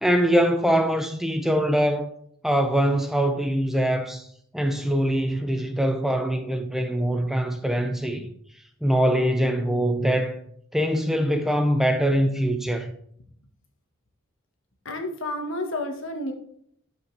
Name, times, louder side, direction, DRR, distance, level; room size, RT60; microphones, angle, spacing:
voice 1, 0.0-2.1 2.4-4.3 4.5-8.3 8.8-10.4 10.7-12.9, equal, ahead, 0.4 m, -23 dB
voice 2, 14.8-16.3, left 1 dB, 65° left, 1.5 m, -30 dB
11.5 x 5.3 x 3.3 m
head